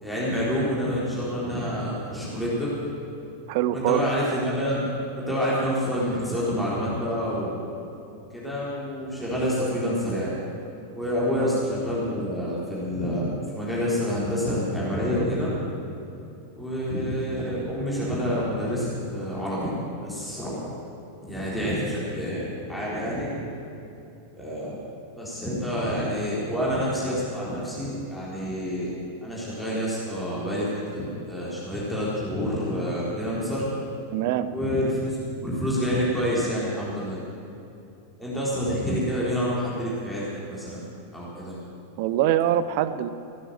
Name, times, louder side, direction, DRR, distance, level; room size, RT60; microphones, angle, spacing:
voice 1, 0.0-2.7 3.7-7.6 8.3-10.3 10.9-15.5 16.5-19.7 20.0-20.7 21.2-23.3 24.4-24.7 25.2-28.9 29.2-33.7 34.5-35.2 35.4-37.2 38.2-40.8 41.1-41.6, equal, 5° left, -8 dB, 3.9 m, -28 dB
voice 2, 3.5-4.0 11.4-11.6 34.1-34.5 42.0-43.1, right 12 dB, 50° right, 13 dB, 0.6 m, -24 dB
15.5 x 9.7 x 7.6 m, 2.7 s
figure-of-eight pair, 90°, 0 cm